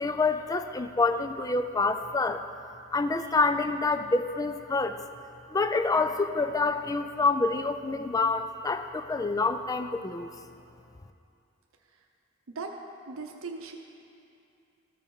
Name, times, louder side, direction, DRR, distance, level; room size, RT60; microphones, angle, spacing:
voice 1, 0.0-2.4 2.9-5.0 5.5-10.3, left 3 dB, 15° left, 9 dB, 0.3 m, -27 dB
voice 2, 13.1-13.8, right 4 dB, 80° right, 3 dB, 0.7 m, -38 dB
14.0 x 5.4 x 4.7 m, 2.6 s
head